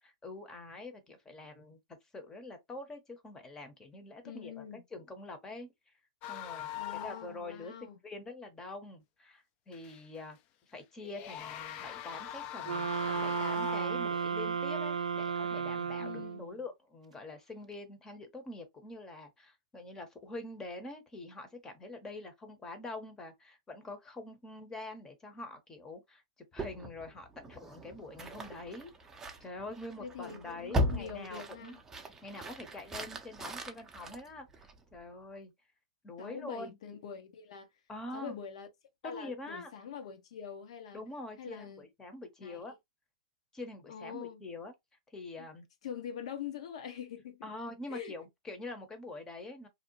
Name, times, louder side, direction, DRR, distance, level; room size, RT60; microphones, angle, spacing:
voice 1, 0.0-1.8 2.1-5.7 6.3-10.4 10.7-26.2 26.5-28.9 29.4-31.8 32.2-35.5 36.0-36.8 37.9-38.4 39.0-39.7 40.9-42.7 43.5-44.7 45.1-45.6 47.4-49.7, left 2 dB, 15° left, 0.8 m, -45 dB
voice 2, 4.2-4.8 6.7-8.0 16.0-16.4 30.0-31.8 36.2-37.7 38.1-38.7 39.0-41.0 41.4-41.8 42.4-42.8 43.9-44.4 45.4-45.5 45.8-48.1, left 8 dB, 65° left, 0.7 m, -44 dB
sound 1, 6.2-7.4 7.6-7.7 9.7-10.2 11.0-14.4, left 10 dB, 40° left, 0.4 m, -42 dB
sound 2, 12.7-16.5, right 6 dB, 85° right, 0.4 m, -34 dB
sound 3, 26.6-35.0, equal, 15° right, 0.5 m, -39 dB
2.7 x 2.0 x 2.9 m
hypercardioid pair, 120°, 4 cm